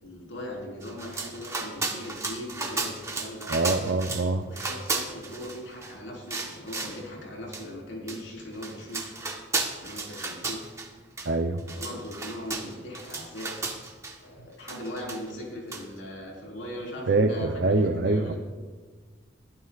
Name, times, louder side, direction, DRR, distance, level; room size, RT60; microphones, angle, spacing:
voice 1, 0.0-3.5 4.4-9.2 9.8-10.7 11.7-13.5 14.2-18.3, equal, 85° left, -2 dB, 4.4 m, -39 dB
sound 1, 0.8-4.3 4.5-5.9 6.3-7.0 7.5-7.6 8.1-8.2 8.5-10.9 11.2-11.3 11.6-14.1 14.7-15.4 15.7-15.8, right 3 dB, 15° right, 1.2 m, -34 dB
voice 2, 3.5-4.5 11.2-11.6 17.1-18.3, right 2 dB, 65° right, 5 dB, 0.6 m, -24 dB
21.0 x 11.5 x 2.5 m, 1.5 s
head